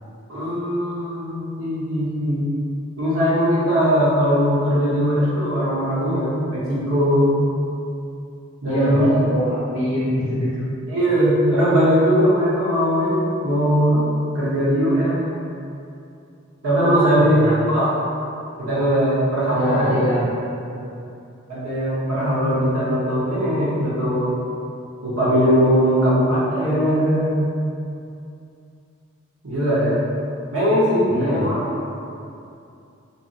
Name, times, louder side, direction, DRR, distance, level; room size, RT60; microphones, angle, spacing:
voice 1, 0.3-2.5 3.0-7.3 8.6-9.1 10.9-14.1 14.3-15.2 16.6-17.9 18.6-20.0 21.5-24.4 25.0-27.3 29.4-30.0 30.5-31.6, equal, 85° right, -8 dB, 0.9 m, -19 dB
voice 2, 8.6-9.0 9.3-10.7 17.2-17.6 19.5-20.9 31.1-31.5, equal, 75° left, -9 dB, 0.7 m, -25 dB
2.7 x 2.6 x 2.5 m, 2.6 s
head